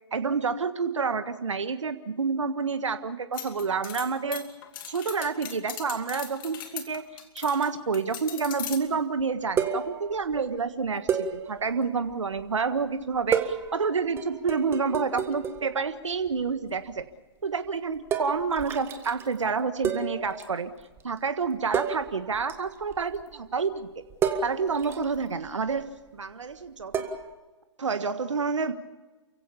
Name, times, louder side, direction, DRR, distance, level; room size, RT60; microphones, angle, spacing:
voice 1, 0.1-4.4 4.9-17.0 17.4-20.7 21.0-23.9 24.4-27.0 27.8-28.7, right 5 dB, 80° right, 10 dB, 1.6 m, -29 dB
sound 1, 3.3-7.7 7.9-8.8, left 10 dB, 45° left, 2.7 m, -39 dB
sound 2, 8.7-8.8 9.2-9.3 9.6-10.4 11.1-12.5 13.1-15.9 16.1-16.6 16.9-17.0 18.1-19.4 19.8-20.6 20.8-21.0 21.4-21.5 21.7-23.3 24.1-25.8 26.9-27.3, right 7 dB, 15° right, 1.6 m, -31 dB
29.5 x 16.0 x 7.1 m, 1.2 s
hypercardioid pair, 135°, 15 cm